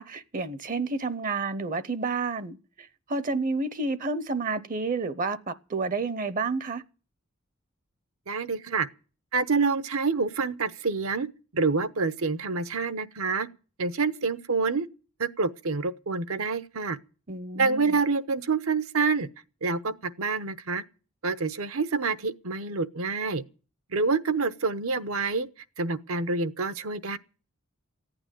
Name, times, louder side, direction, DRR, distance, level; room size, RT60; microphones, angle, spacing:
voice 1, 0.0-6.8 17.3-18.0, right 3 dB, 40° right, 0.7 m, -30 dB
voice 2, 8.3-8.9 9.3-11.3 11.5-13.5 13.8-14.9 15.2-17.0 17.6-19.3 19.6-20.8 21.2-23.4 23.9-25.5 25.8-27.2, right 4 dB, 75° right, 0.9 m, -27 dB
15.0 x 9.0 x 9.0 m
head